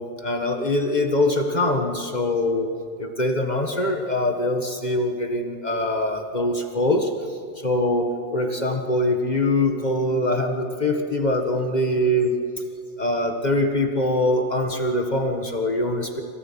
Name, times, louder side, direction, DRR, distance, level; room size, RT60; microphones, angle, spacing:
voice 1, 0.0-2.7 3.0-7.1 7.6-12.3 13.0-16.2, left 1 dB, 50° left, 4 dB, 0.5 m, -23 dB
28.5 x 25.5 x 5.7 m, 2.4 s
omnidirectional pair, 3.5 m